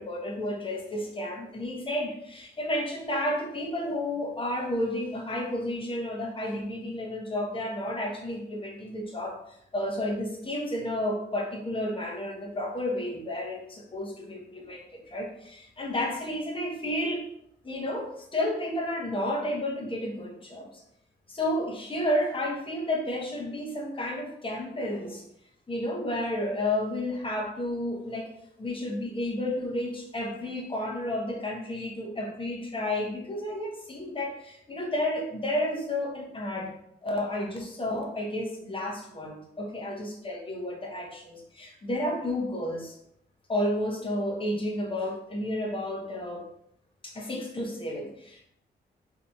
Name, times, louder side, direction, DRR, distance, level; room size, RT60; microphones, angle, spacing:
voice 1, 0.0-9.4 9.7-17.2 17.6-20.7 21.3-25.2 25.7-28.3 28.6-36.7 37.0-43.0 43.5-46.4 47.0-48.5, left 1 dB, 30° left, -1 dB, 0.7 m, -31 dB
2.7 x 2.6 x 2.2 m, 0.72 s
cardioid pair, 80°, 18 cm